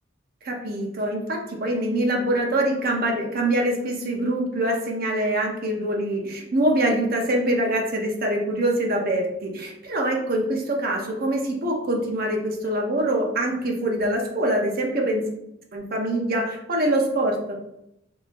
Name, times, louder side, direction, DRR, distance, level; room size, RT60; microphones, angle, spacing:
voice 1, 0.4-15.2 15.7-17.6, right 1 dB, 50° right, 0 dB, 0.6 m, -24 dB
3.7 x 2.7 x 2.5 m, 0.81 s
head